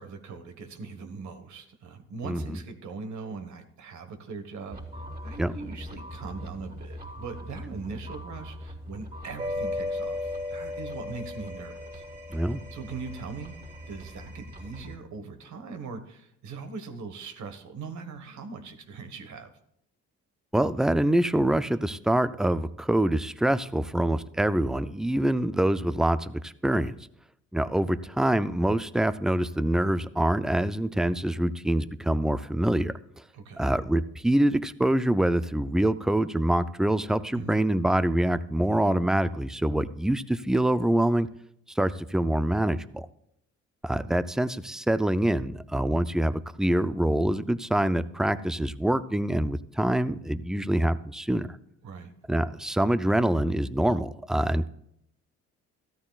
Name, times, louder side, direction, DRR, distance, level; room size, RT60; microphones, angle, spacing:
voice 1, 0.0-4.8 5.2-12.0 12.7-13.5 13.9-19.5 33.3-33.6 37.3-37.6 51.8-52.1, right 4 dB, 70° right, 7 dB, 1.5 m, -40 dB
sound 1, 4.7-15.0, left 2 dB, 30° right, 3.7 m, -38 dB
voice 2, 12.3-12.6 20.5-27.0 27.5-32.9 33.6-41.3 41.8-43.1 43.8-51.5 52.3-54.7, right 1 dB, ahead, 13 dB, 0.4 m, -25 dB
14.5 x 12.5 x 2.4 m, 0.76 s
cardioid pair, 90°, 30 cm